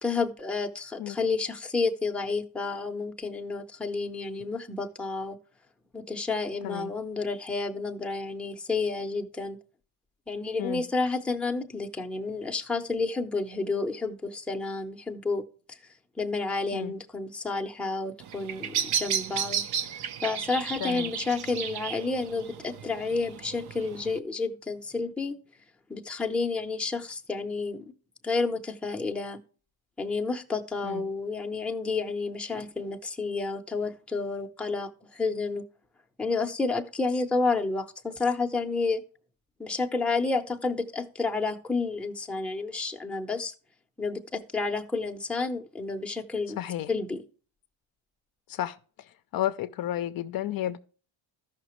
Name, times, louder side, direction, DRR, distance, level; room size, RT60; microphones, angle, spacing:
voice 1, 0.0-5.4 5.9-9.6 10.3-15.4 15.7-15.8 16.2-19.6 20.2-25.4 25.9-27.8 28.2-29.4 30.0-35.6 36.2-39.0 39.6-43.5 44.0-46.6 46.9-47.2, left 3 dB, ahead, 0.7 m, -30 dB
Bird vocalization bird call bird song, 18.2-24.2, right 8 dB, 55° right, 0.8 m, -33 dB
voice 2, 20.8-21.1 30.8-31.0 46.6-46.9 48.5-48.8 49.3-50.8, left 12 dB, 50° left, 0.6 m, -31 dB
14.0 x 5.9 x 3.1 m
cardioid pair, 145°, 46 cm